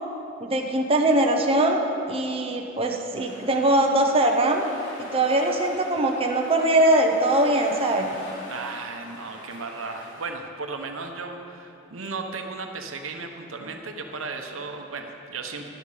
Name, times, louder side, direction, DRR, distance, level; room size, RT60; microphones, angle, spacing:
voice 1, 0.4-4.7 5.1-8.2, right 1 dB, 30° right, 2 dB, 0.9 m, -21 dB
sound 1, 3.1-10.2, left 1 dB, 65° left, 3.2 m, -43 dB
voice 2, 8.5-15.7, right 4 dB, 85° right, 4 dB, 1.0 m, -35 dB
12.5 x 11.0 x 5.0 m, 2.8 s
head